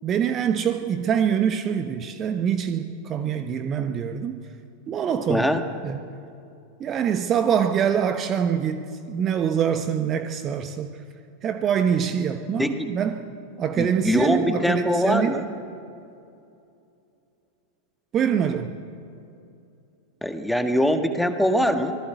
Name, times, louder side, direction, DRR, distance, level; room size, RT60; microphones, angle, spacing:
voice 1, 0.0-4.4 4.9-5.5 5.8-6.0 6.8-10.9 11.4-13.3 13.6-15.4 18.1-18.7, right 8 dB, 30° right, 8 dB, 1.1 m, -24 dB
voice 2, 5.3-5.7 12.6-12.9 13.8-15.5 20.2-22.0, equal, ahead, 7 dB, 1.7 m, -22 dB
25.0 x 17.0 x 8.3 m, 2.7 s
figure-of-eight pair, 90°, 0 cm